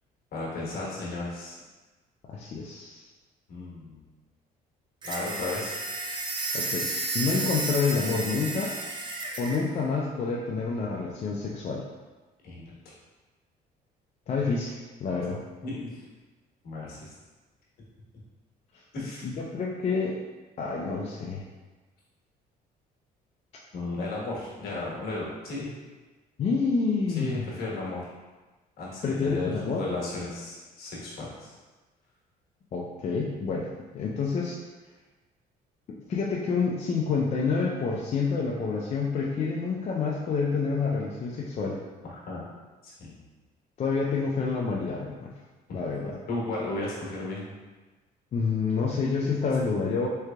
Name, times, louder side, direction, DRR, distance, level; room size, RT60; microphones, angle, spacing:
voice 1, 0.3-1.6 3.5-4.0 5.0-5.7 12.4-12.7 15.6-16.0 16.6-17.1 18.9-19.3 23.7-25.7 27.1-28.1 28.8-29.5 29.8-31.5 42.1-42.4 42.8-43.2 46.0-47.5, left 2 dB, 65° left, -4 dB, 1.2 m, -34 dB
voice 2, 2.3-3.0 6.5-6.9 7.1-8.7 9.4-11.8 14.3-15.4 19.2-20.2 20.6-21.4 26.4-27.4 29.0-29.8 32.7-33.7 33.9-34.6 36.1-41.8 43.8-45.3 45.7-46.2 48.3-50.1, left 4 dB, 40° left, -3 dB, 0.4 m, -28 dB
sound 1, 5.0-9.6, right 2 dB, 25° right, 0.5 m, -32 dB
3.7 x 3.2 x 2.3 m, 1.2 s
cardioid pair, 110°, 17 cm